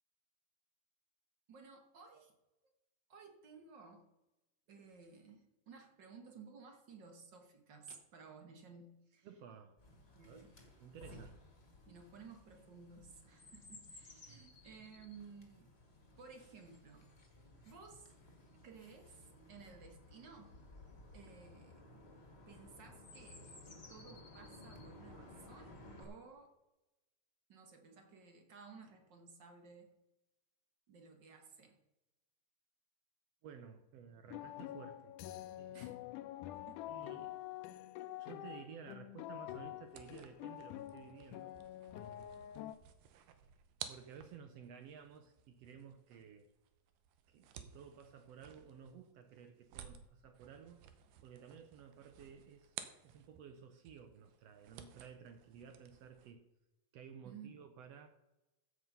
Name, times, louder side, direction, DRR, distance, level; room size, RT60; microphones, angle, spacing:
voice 1, 1.5-2.4 3.1-4.1 4.7-9.3 10.1-10.5 11.1-11.3 11.9-15.7 16.2-17.1 17.6-18.1 18.6-20.6 21.1-21.8 22.5-26.5 27.5-29.9 30.9-31.8 35.7-36.0 36.5-36.8 57.2-57.6, right 5 dB, 50° right, 5 dB, 1.4 m, -56 dB
voice 2, 9.2-9.8 10.2-10.4 10.8-11.3 14.3-14.5 33.4-35.1 35.5-35.8 36.9-37.4 38.1-41.6 41.9-42.3 43.9-46.5 47.3-50.8 51.2-52.8 53.0-56.5 56.9-58.1, right 7 dB, 75° right, 8 dB, 1.5 m, -55 dB
Chirp tweet, 9.8-26.0, left 2 dB, 25° left, 1.6 m, -57 dB
sound 1, 34.3-42.8, left 13 dB, 85° left, 2.1 m, -47 dB
sound 2, 39.8-53.6 53.9-56.3, right 9 dB, 90° right, 2.5 m, -55 dB
15.0 x 6.6 x 5.4 m, 0.99 s
omnidirectional pair, 3.6 m